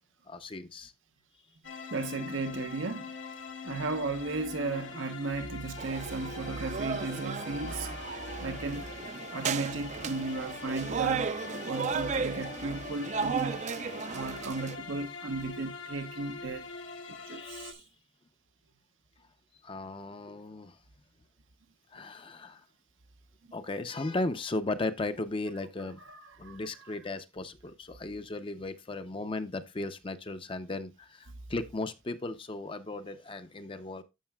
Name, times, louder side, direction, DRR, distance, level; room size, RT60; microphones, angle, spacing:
voice 1, 0.3-0.9 17.3-17.8 19.6-20.8 21.9-22.6 23.5-26.0 26.4-34.0, left 2 dB, 25° left, 0.5 m, -36 dB
sound 1, 1.6-17.7, left 4 dB, 80° left, 1.3 m, -43 dB
voice 2, 1.9-3.1 3.6-8.9 9.3-11.3 11.6-13.7 14.1-16.7 17.1-17.8 22.0-22.1 26.0-27.0, right 3 dB, 80° right, 0.8 m, -35 dB
sound 2, 5.8-14.8, right 5 dB, 35° right, 0.4 m, -35 dB
13.0 x 5.6 x 2.2 m
head